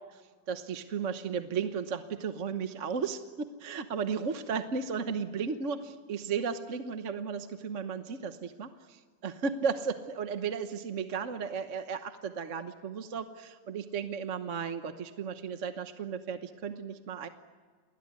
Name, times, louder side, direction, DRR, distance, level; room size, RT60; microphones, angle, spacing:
voice 1, 0.5-17.3, right 6 dB, 45° right, 8 dB, 1.3 m, -34 dB
28.5 x 21.0 x 9.5 m, 1.5 s
omnidirectional pair, 1.9 m